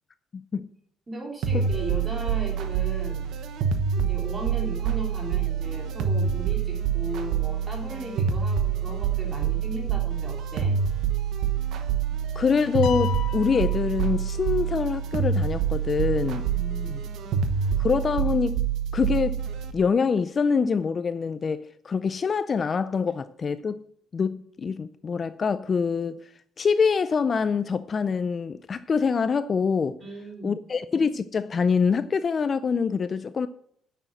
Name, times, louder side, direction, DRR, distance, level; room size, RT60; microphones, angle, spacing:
voice 1, 0.3-0.7 12.4-16.5 17.8-18.7 18.9-19.4 19.7-23.8 24.1-26.2 26.6-30.0 30.4-33.5, left 5 dB, 30° left, 0.4 m, -25 dB
voice 2, 1.1-3.2 4.0-10.7 16.5-17.0 30.0-30.5, right 1 dB, 20° right, 3.3 m, -36 dB
sound 1, 1.4-19.7, right 7 dB, 70° right, 1.1 m, -26 dB
sound 2, 12.8-14.7, left 9 dB, 90° left, 1.2 m, -36 dB
9.9 x 7.0 x 7.6 m
cardioid pair, 165°, 0 cm